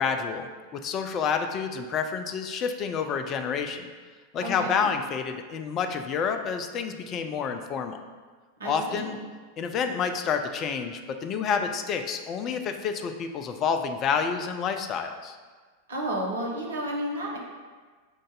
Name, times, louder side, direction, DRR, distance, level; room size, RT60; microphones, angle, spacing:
voice 1, 0.0-3.9 4.3-8.0 8.7-9.2 9.6-15.4, left 6 dB, 30° left, 6 dB, 0.3 m, -29 dB
voice 2, 4.4-4.9 8.6-9.2 15.9-17.4, right 1 dB, 65° right, -2 dB, 0.9 m, -31 dB
5.4 x 2.5 x 3.8 m, 1.4 s
figure-of-eight pair, 90°, 0 cm